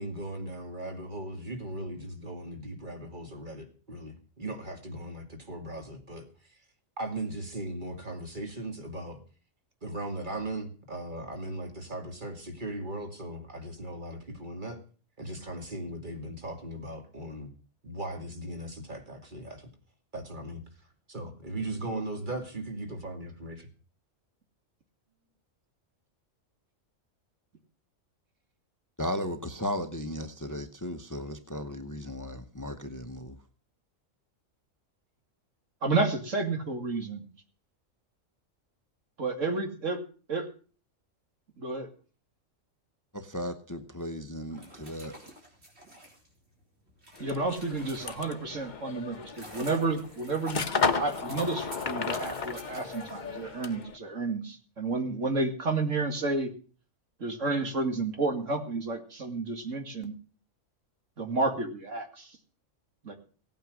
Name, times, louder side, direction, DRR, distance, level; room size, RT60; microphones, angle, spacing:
voice 1, 0.0-6.2 7.0-9.2 9.8-14.8 15.2-17.5 17.8-19.7 20.1-20.6 21.1-23.7, right 1 dB, 35° right, 2.6 m, -38 dB
voice 2, 29.0-33.4 43.1-45.2, left 1 dB, 15° left, 1.1 m, -36 dB
voice 3, 35.8-37.3 39.2-40.0 40.3-40.5 41.6-41.9 47.2-50.6 51.0-56.5 57.2-60.1 61.2-62.4 63.0-63.1, right 3 dB, 70° right, 2.6 m, -31 dB
sound 1, 44.4-48.5 49.0-53.7, right 1 dB, 55° right, 4.8 m, -48 dB
sound 2, 47.2-54.0, left 5 dB, 40° left, 1.0 m, -34 dB
17.0 x 9.2 x 6.3 m
omnidirectional pair, 1.4 m